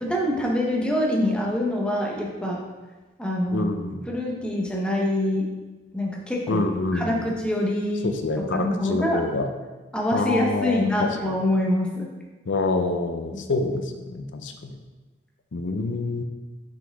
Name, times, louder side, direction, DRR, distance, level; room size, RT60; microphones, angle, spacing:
voice 1, 0.0-2.6 3.2-3.7 4.1-5.5 5.9-6.6 6.9-8.1 8.4-9.2 9.9-12.1 13.3-13.4, left 1 dB, 5° left, -2 dB, 0.9 m, -25 dB
voice 2, 3.5-4.0 6.5-7.3 8.0-9.5 10.1-11.3 12.5-14.8 15.5-16.2, left 3 dB, 75° left, 6 dB, 0.6 m, -27 dB
6.0 x 4.8 x 3.5 m, 1.2 s
head